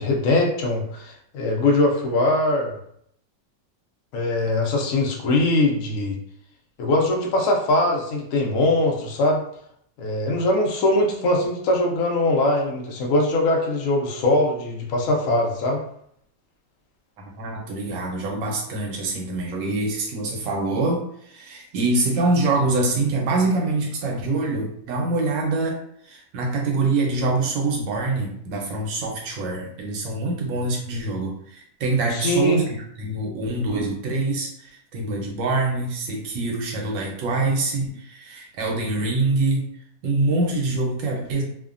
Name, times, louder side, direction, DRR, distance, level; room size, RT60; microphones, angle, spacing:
voice 1, 0.0-2.8 4.1-6.2 6.8-9.4 10.0-15.8 32.1-32.6, left 2 dB, 70° left, 0 dB, 0.7 m, -21 dB
voice 2, 17.2-25.8 26.0-39.7 40.0-41.4, right 2 dB, 90° right, 0 dB, 1.4 m, -25 dB
3.2 x 2.1 x 2.4 m, 0.69 s
omnidirectional pair, 2.0 m